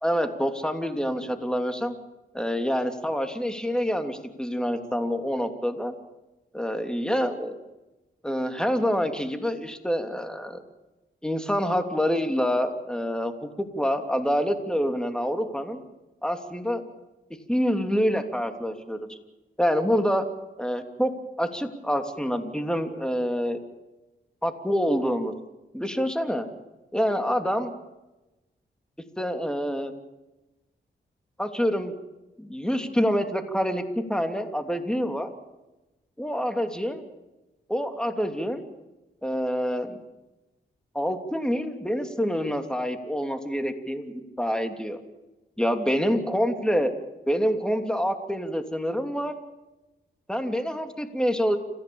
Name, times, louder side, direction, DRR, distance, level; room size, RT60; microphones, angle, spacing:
voice 1, 0.0-2.0 2.3-5.9 6.5-7.6 8.2-10.6 11.2-13.3 13.6-15.8 16.2-16.8 17.5-19.2 19.6-20.3 20.6-21.1 21.4-23.6 24.4-25.3 25.7-26.5 26.9-27.7 29.2-29.9 31.4-31.9 32.4-35.3 36.2-37.0 37.7-38.6 39.2-40.0 40.9-45.0 45.6-46.9 47.3-49.3 50.3-51.6, equal, 5° left, 6 dB, 3.1 m, -26 dB
30.0 x 15.5 x 7.2 m, 1.0 s
cardioid pair, 55°, 19 cm